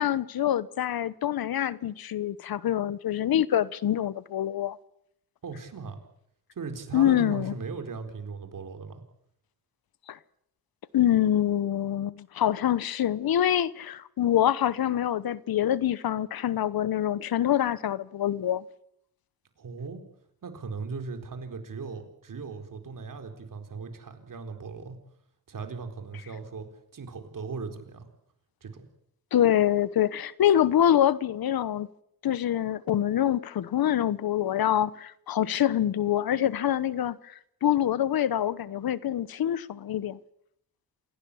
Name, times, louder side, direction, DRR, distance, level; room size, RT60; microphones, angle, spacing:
voice 1, 0.0-4.8 6.9-7.5 10.1-10.2 10.9-18.6 29.3-31.9 32.2-40.2, left 11 dB, 85° left, 1.0 m, -25 dB
voice 2, 5.4-6.0 6.6-9.0 19.6-20.0 20.4-25.0 25.5-26.7 26.9-28.1 28.6-28.8, right 4 dB, 65° right, 4.2 m, -38 dB
28.0 x 17.0 x 8.6 m
wide cardioid pair, 105°, 35 cm